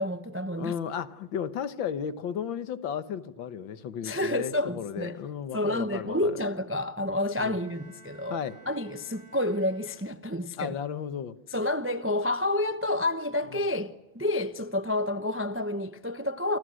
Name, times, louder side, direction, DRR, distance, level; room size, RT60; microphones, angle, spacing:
voice 1, 0.0-0.7 4.0-5.2 5.5-8.4 8.7-10.7 11.5-16.6, left 1 dB, 15° right, 0.4 m, -29 dB
voice 2, 0.6-6.4 7.4-7.6 8.3-8.6 10.6-11.4 13.5-13.7, left 8 dB, 75° left, 1.9 m, -34 dB
Bowed string instrument, 7.3-10.5, right 4 dB, 75° right, 4.1 m, -54 dB
28.5 x 26.5 x 6.4 m
omnidirectional pair, 2.1 m